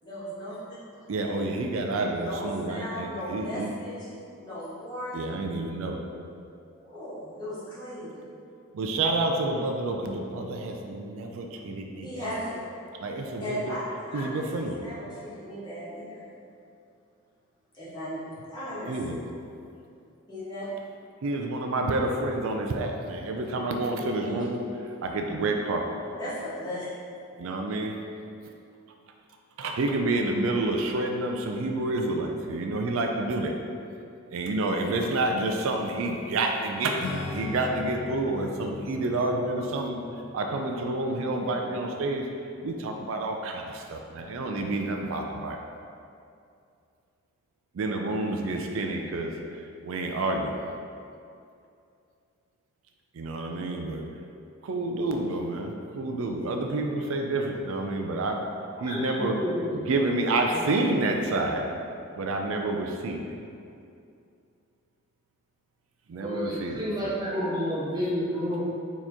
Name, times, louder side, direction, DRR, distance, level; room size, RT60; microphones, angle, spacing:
voice 1, 0.0-0.6 2.2-4.1 4.4-5.5 6.8-8.2 12.0-12.6 13.4-16.2 17.7-18.9 20.3-20.7 24.2-24.4 26.2-26.9, equal, 20° left, -11 dB, 1.3 m, -36 dB
voice 2, 1.1-3.7 5.1-6.0 8.7-12.4 13.0-13.8 14.1-14.8 18.9-19.2 21.2-25.9 27.4-28.0 29.6-33.6 34.3-40.0 40.3-42.3 42.6-45.6 47.7-49.3 49.8-50.7 53.1-54.0 54.6-58.5 58.8-59.4 59.7-61.7 62.2-63.3 66.1-67.1, right 2 dB, 70° right, 3 dB, 0.4 m, -29 dB
Acoustic guitar / Strum, 37.0-42.9, left 3 dB, 60° left, 0.4 m, -40 dB
voice 3, 58.9-59.8 60.5-60.6 66.2-68.6, equal, 20° right, -8 dB, 0.5 m, -30 dB
4.4 x 3.0 x 3.5 m, 2.5 s
head